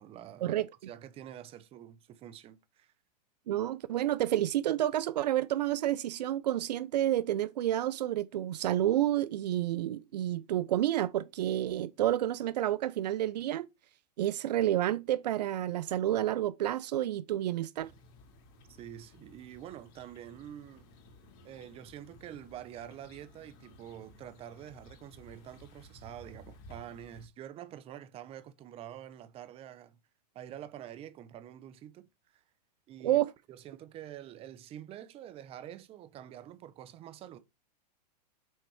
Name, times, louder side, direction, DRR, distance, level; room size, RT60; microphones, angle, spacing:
voice 1, 0.0-2.9 18.8-20.9 21.4-30.0 30.3-32.4 32.9-33.2 33.5-37.4, right 11 dB, 25° right, 0.9 m, -47 dB
voice 2, 3.5-13.7 14.2-17.9 33.0-33.3, right 13 dB, 75° right, 0.6 m, -30 dB
sound 1, 17.8-27.3, left 1 dB, 45° left, 2.7 m, -56 dB
6.5 x 4.3 x 4.8 m
hypercardioid pair, 135°, 21 cm